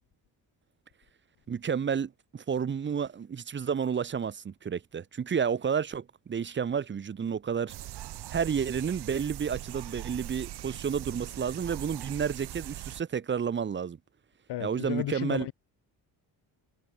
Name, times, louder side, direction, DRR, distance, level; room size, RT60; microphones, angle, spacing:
voice 1, 1.5-7.7 8.3-14.0 14.6-15.5, right 7 dB, 30° right, 1.3 m, -31 dB
sound 1, 7.7-13.0, right 14 dB, 75° right, 1.8 m, -41 dB
voice 2, 14.5-15.5, left 14 dB, 85° left, 4.7 m, -33 dB
cardioid pair, 180°, 39 cm